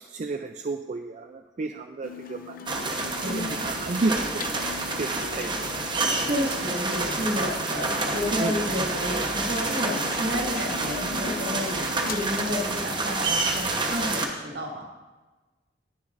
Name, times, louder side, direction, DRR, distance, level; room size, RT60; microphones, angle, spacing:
voice 1, 0.1-4.5 5.0-5.7 8.4-8.5, right 3 dB, 40° right, 6 dB, 0.4 m, -32 dB
sound 1, 2.0-12.3, left 5 dB, 55° left, 0.5 m, -40 dB
sound 2, 2.7-14.3, right 3 dB, 25° right, 1.0 m, -28 dB
voice 2, 3.2-3.7 6.2-14.9, equal, 65° right, -1 dB, 1.9 m, -31 dB
19.0 x 7.2 x 2.5 m, 1.2 s
head